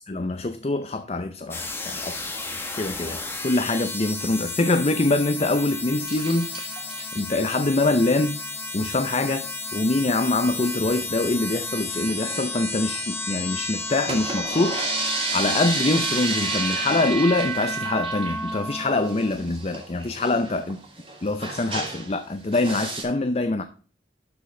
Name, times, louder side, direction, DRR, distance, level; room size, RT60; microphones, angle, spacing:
voice 1, 0.1-2.1 2.7-6.5 7.1-8.4 8.7-20.8 21.2-23.6, left 2 dB, 35° left, 9 dB, 0.6 m, -24 dB
sound 1, 1.5-19.3, left 1 dB, 15° left, 1.2 m, -32 dB
sound 2, 6.1-7.2 8.4-8.7 9.0-9.1 9.3-9.4 9.7-9.8 10.4-11.0 11.5-13.3 13.8-22.2 22.5-23.0, right 3 dB, 30° right, 2.8 m, -32 dB
12.0 x 5.3 x 3.8 m, 0.40 s
head